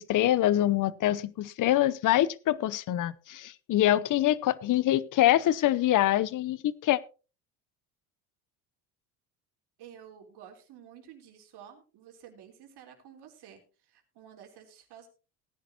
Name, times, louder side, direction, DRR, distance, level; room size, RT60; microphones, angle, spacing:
voice 1, 0.0-7.0, left 13 dB, 45° left, 0.8 m, -25 dB
voice 2, 9.8-15.1, right 9 dB, 60° right, 3.7 m, -51 dB
18.0 x 10.0 x 2.8 m
supercardioid pair, 80°, 44 cm